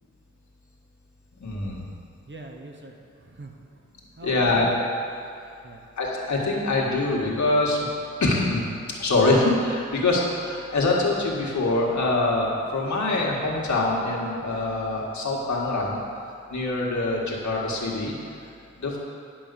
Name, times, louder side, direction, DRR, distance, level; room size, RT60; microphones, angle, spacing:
voice 1, 1.4-1.9 4.2-4.7 6.0-7.9 8.2-8.6 9.0-16.0 16.5-18.1 18.8-19.0, left 2 dB, 70° left, -3 dB, 1.8 m, -24 dB
voice 2, 2.3-3.6 4.2-4.7 5.6-5.9, right 2 dB, 40° right, 1 dB, 1.1 m, -42 dB
10.0 x 5.5 x 6.9 m, 2.5 s
wide cardioid pair, 100°, 30 cm